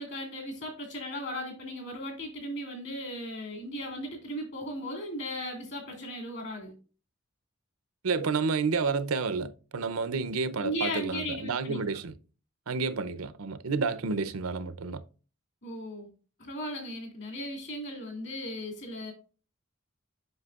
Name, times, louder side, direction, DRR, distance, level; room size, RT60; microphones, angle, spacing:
voice 1, 0.0-6.7 10.6-11.8 15.6-16.1 16.4-19.1, equal, 55° left, 2.8 m, -36 dB
voice 2, 8.0-12.1 12.7-15.0, right 4 dB, 90° right, 0.6 m, -30 dB
7.9 x 5.8 x 2.4 m
head